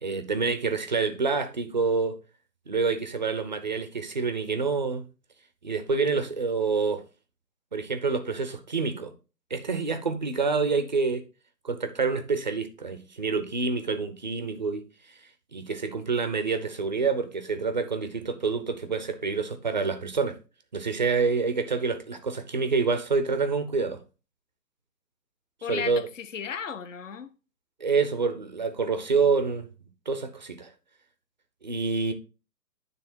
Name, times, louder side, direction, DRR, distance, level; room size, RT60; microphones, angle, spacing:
voice 1, 0.0-2.2 2.7-5.0 5.6-7.0 7.7-9.1 9.5-11.2 11.6-14.8 15.5-20.4 20.7-24.0 25.7-26.0 27.8-29.7 30.1-30.7 31.6-32.1, right 4 dB, 30° right, 0.5 m, -27 dB
voice 2, 25.6-27.3, left 7 dB, 50° left, 0.9 m, -35 dB
9.5 x 3.3 x 4.3 m
figure-of-eight pair, 145°, 49 cm